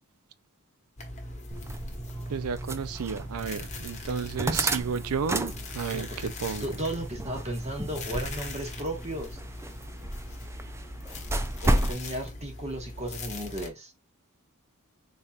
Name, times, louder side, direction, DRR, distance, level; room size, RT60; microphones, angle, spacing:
sound 1, 1.0-13.7, left 2 dB, 30° left, 1.1 m, -41 dB
sound 2, 1.5-12.0, right 1 dB, 10° right, 0.4 m, -33 dB
voice 1, 2.3-6.7, right 6 dB, 70° right, 0.4 m, -32 dB
voice 2, 6.6-9.4 11.6-13.9, right 1 dB, 30° right, 1.3 m, -35 dB
4.2 x 3.3 x 2.4 m
head